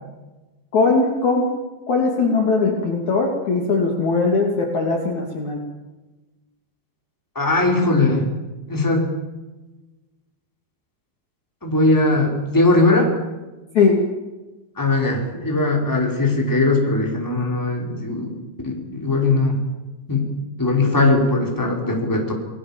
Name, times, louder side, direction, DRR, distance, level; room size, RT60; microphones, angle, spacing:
voice 1, 0.7-1.5 1.9-5.6 13.8-14.0, left 4 dB, 45° left, 1 dB, 3.6 m, -19 dB
voice 2, 7.3-8.2 8.7-9.1 11.6-13.1 14.8-18.3 18.6-19.6 20.1-20.3 20.6-22.3, left 2 dB, 5° left, 0 dB, 4.4 m, -19 dB
29.5 x 19.5 x 7.4 m, 1.1 s
omnidirectional pair, 5.4 m